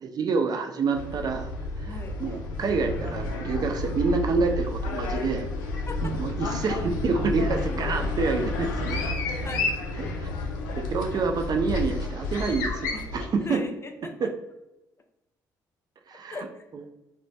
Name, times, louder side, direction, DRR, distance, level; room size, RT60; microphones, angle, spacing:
voice 1, 0.0-1.5 1.8-5.5 6.0-9.0 10.0-10.3 10.9-13.6 14.2-14.3 16.1-16.4, right 4 dB, 40° right, 5 dB, 0.4 m, -27 dB
sound 1, 0.9-13.3, left 2 dB, 80° left, 0.4 m, -30 dB
voice 2, 1.9-2.2 5.9-6.1 9.4-9.7 10.7-10.8 12.9-13.0 13.4-14.3 16.1-16.7, left 2 dB, 25° left, 4 dB, 0.5 m, -38 dB
3.0 x 2.0 x 2.6 m, 0.95 s
hypercardioid pair, 45°, 10 cm